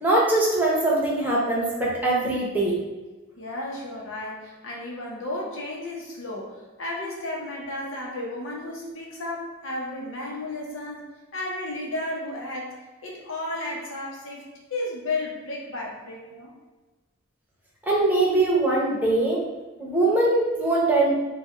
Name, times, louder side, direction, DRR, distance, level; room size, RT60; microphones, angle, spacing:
voice 1, 0.0-2.8 17.9-19.4 19.8-21.1, right 2 dB, 10° right, -5 dB, 0.8 m, -22 dB
voice 2, 3.4-11.1 11.3-14.4 14.7-16.5, left 2 dB, 85° left, -2 dB, 1.0 m, -33 dB
3.4 x 2.3 x 4.3 m, 1.2 s
head